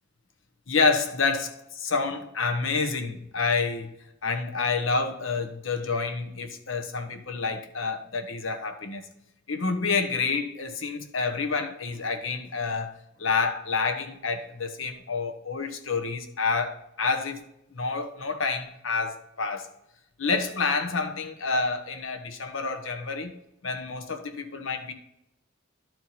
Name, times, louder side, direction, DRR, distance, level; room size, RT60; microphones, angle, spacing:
voice 1, 0.7-3.9 4.2-9.0 9.5-12.9 13.2-17.4 17.7-19.7 20.2-23.3 23.6-24.9, left 4 dB, 70° left, 1.1 m, -28 dB
12.5 x 4.6 x 4.2 m
head